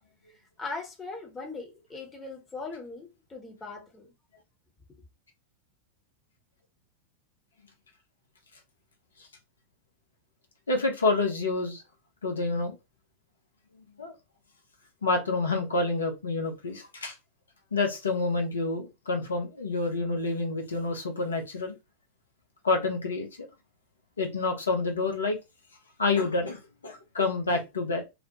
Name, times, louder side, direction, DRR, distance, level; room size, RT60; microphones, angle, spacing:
voice 1, 0.6-4.1, left 3 dB, 15° left, 0.8 m, -39 dB
voice 2, 10.7-11.8 12.2-12.7 14.0-14.1 15.0-17.1 17.7-21.7 22.6-23.5 24.2-25.4 26.0-28.0, left 3 dB, 70° left, 0.6 m, -28 dB
2.7 x 2.0 x 2.9 m
figure-of-eight pair, 90°, 0 cm